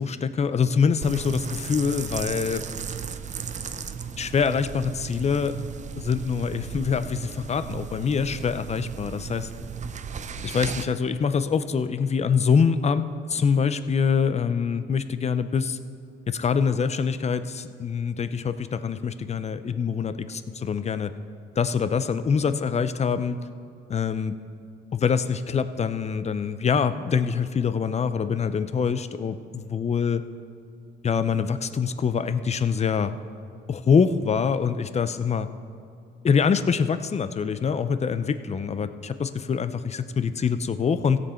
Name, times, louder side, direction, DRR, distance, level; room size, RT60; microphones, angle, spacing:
voice 1, 0.0-2.6 4.2-5.5 6.0-9.5 10.4-15.8 16.3-21.1 21.6-23.4 23.9-24.4 24.9-30.2 31.0-33.2 33.7-35.5 36.2-41.2, left 6 dB, 35° left, 12 dB, 0.5 m, -25 dB
sound 1, 1.0-10.8, right 7 dB, 35° right, 0.5 m, -35 dB
16.0 x 7.0 x 4.4 m, 2.4 s
cardioid pair, 90°, 20 cm